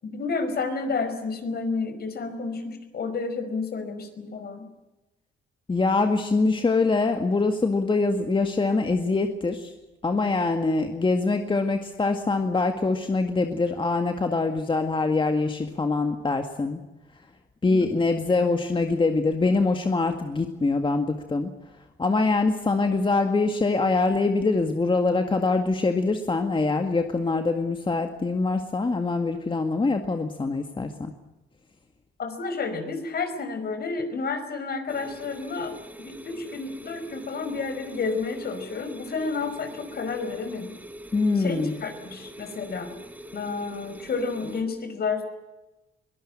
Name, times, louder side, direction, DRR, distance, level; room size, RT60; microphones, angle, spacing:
voice 1, 0.0-4.7 17.7-18.0 32.2-35.7 36.0-40.7 41.4-42.9 43.3-45.3, left 4 dB, 50° left, 8 dB, 5.2 m, -30 dB
voice 2, 5.7-9.7 10.0-16.8 17.6-21.5 22.0-31.1 41.1-41.7, left 3 dB, 25° left, 5 dB, 2.0 m, -24 dB
sound 1, 34.9-44.6, right 1 dB, 10° right, 3.3 m, -44 dB
23.5 x 18.0 x 8.9 m, 1.1 s
cardioid pair, 90°, 20 cm